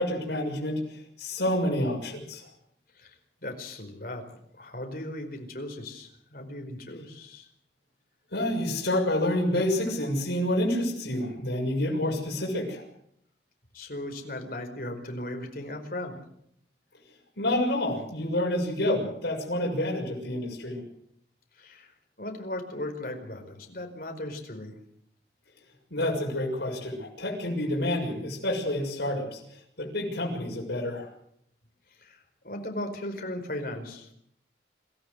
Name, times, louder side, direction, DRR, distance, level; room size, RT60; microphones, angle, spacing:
voice 1, 0.0-2.5 8.3-12.8 17.4-20.8 25.9-29.4 29.8-31.1, left 1 dB, 80° left, -1 dB, 6.7 m, -28 dB
voice 2, 2.9-7.5 13.7-16.2 21.6-21.9 22.2-24.8 31.9-34.1, left 1 dB, 55° left, 4 dB, 4.7 m, -37 dB
26.5 x 15.0 x 8.0 m, 0.71 s
head